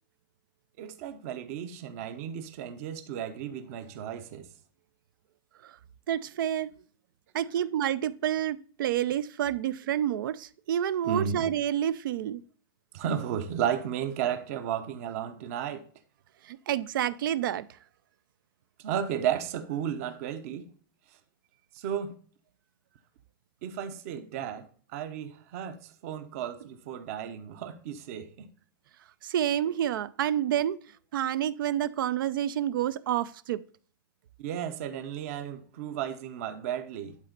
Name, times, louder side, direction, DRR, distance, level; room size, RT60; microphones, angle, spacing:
voice 1, 0.8-4.5 11.0-11.5 12.9-15.8 18.8-20.7 21.8-22.1 23.6-24.6 24.9-28.5 34.4-37.2, right 9 dB, 40° right, 0.9 m, -33 dB
voice 2, 6.1-6.7 7.3-12.4 16.4-17.7 29.2-30.8 31.1-33.6, right 11 dB, 65° right, 0.5 m, -29 dB
11.0 x 4.3 x 3.9 m
supercardioid pair, 175°, 12 cm